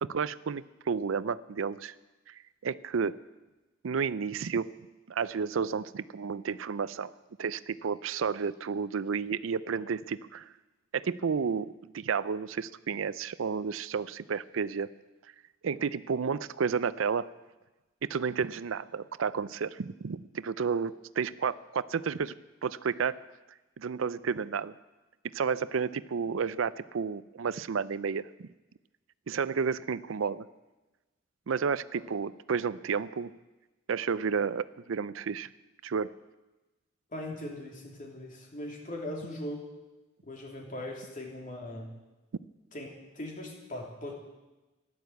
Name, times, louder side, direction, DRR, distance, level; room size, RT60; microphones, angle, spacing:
voice 1, 0.0-1.9 2.3-3.2 3.8-4.7 5.1-7.1 7.4-10.5 10.9-14.9 15.6-17.3 18.0-22.3 22.6-23.2 23.8-24.7 25.3-28.5 29.3-30.4 31.5-33.3 33.9-35.5 35.8-36.1, right 6 dB, 75° right, 16 dB, 0.5 m, -31 dB
voice 2, 37.1-39.7 40.2-41.9 42.7-44.1, left 1 dB, 40° left, 0 dB, 3.1 m, -40 dB
15.0 x 11.0 x 8.1 m, 1.1 s
head